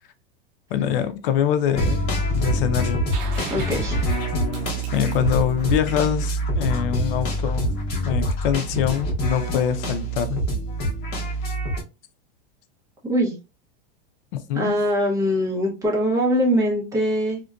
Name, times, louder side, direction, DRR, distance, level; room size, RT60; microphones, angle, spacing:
voice 1, 0.7-2.0 2.3-3.1 4.9-7.7 8.0-10.4 14.5-14.7, left 10 dB, 65° left, 0.5 m, -24 dB
sound 1, 1.7-11.8, right 1 dB, 35° left, 0.9 m, -25 dB
sound 2, 3.1-6.8 8.7-8.8, right 6 dB, 55° right, 0.7 m, -40 dB
voice 2, 3.5-4.0 13.1-13.4 14.5-17.4, equal, 10° right, 0.7 m, -22 dB
2.5 x 2.2 x 2.3 m
supercardioid pair, 150°, 29 cm